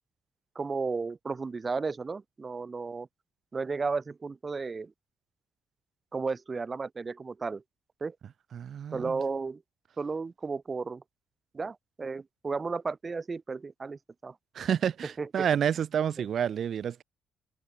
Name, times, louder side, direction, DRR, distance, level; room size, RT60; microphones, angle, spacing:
voice 1, 0.5-3.1 3.5-4.9 6.1-7.6 8.0-8.2 8.9-9.6 10.0-11.0 11.5-14.4 15.0-15.5 16.2-16.3, right 4 dB, 30° right, 0.8 m, -34 dB
voice 2, 8.5-9.1 14.6-17.0, right 8 dB, 60° right, 1.6 m, -29 dB
open air
cardioid pair, 90°, 0 cm